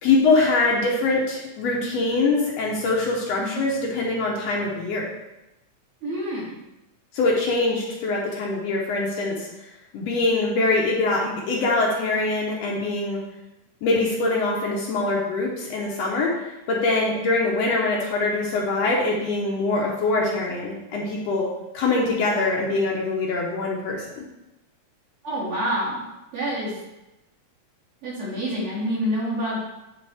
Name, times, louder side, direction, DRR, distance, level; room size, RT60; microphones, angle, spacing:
voice 1, 0.0-5.0 7.1-9.5 9.9-13.2 13.8-16.3 16.7-21.5 21.7-24.0, left 3 dB, 70° left, -2 dB, 1.9 m, -23 dB
voice 2, 6.0-6.5 25.2-26.0 26.3-26.7 28.0-29.7, equal, 50° right, -9 dB, 3.4 m, -27 dB
9.8 x 3.9 x 3.4 m, 0.97 s
omnidirectional pair, 3.3 m